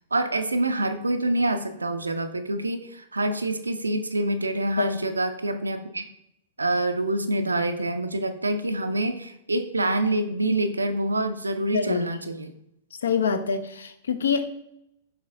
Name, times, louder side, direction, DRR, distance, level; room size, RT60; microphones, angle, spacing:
voice 1, 0.1-6.1 6.6-12.5, right 1 dB, 80° right, 9 dB, 0.3 m, -26 dB
voice 2, 11.7-12.1 13.0-14.4, left 6 dB, 65° left, 10 dB, 0.4 m, -25 dB
5.6 x 3.4 x 2.5 m, 0.80 s
figure-of-eight pair, 100°, 0 cm